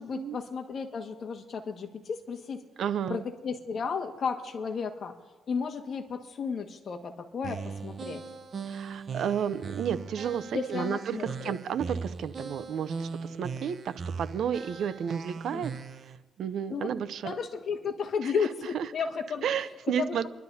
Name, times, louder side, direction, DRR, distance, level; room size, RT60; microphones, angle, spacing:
voice 1, 0.0-2.6 3.1-5.1 5.5-8.2 10.5-11.6 15.5-15.6 16.7-16.9 17.2-19.4 19.9-20.3, left 5 dB, 50° left, 3 dB, 1.7 m, -33 dB
voice 2, 2.8-3.2 8.7-13.1 13.4-13.9 14.2-15.7 16.4-17.3 18.2-18.3 18.7-18.8 19.4-20.3, right 8 dB, 70° right, 13 dB, 0.6 m, -31 dB
sound 1, 7.4-16.2, right 5 dB, 45° right, 0.9 m, -39 dB
30.0 x 12.0 x 2.8 m, 1.3 s
cardioid pair, 90°, 0 cm